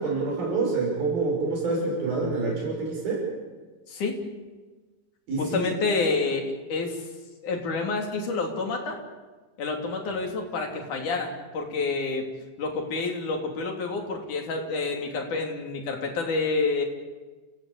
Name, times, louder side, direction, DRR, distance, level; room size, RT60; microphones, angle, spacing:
voice 1, 0.0-3.2 5.3-5.7, right 3 dB, 80° right, -1 dB, 7.5 m, -27 dB
voice 2, 3.9-4.2 5.4-7.0 7.4-9.0 9.6-12.2 12.6-16.8, left 3 dB, 60° left, 2 dB, 4.3 m, -28 dB
28.5 x 16.5 x 8.6 m, 1.3 s
omnidirectional pair, 4.2 m